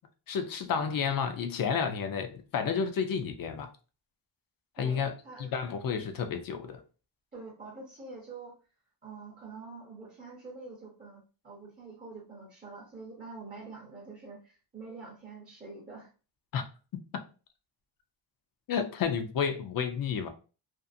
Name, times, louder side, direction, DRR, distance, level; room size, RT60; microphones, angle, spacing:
voice 1, 0.3-3.7 4.8-5.1 5.4-6.8 16.5-16.6 17.1-17.2 18.7-20.3, left 6 dB, 50° left, 0.5 m, -31 dB
voice 2, 4.8-5.5 7.3-8.6 9.0-16.1, right 3 dB, 20° right, 0.6 m, -46 dB
2.6 x 2.4 x 2.5 m
wide cardioid pair, 160°, 48 cm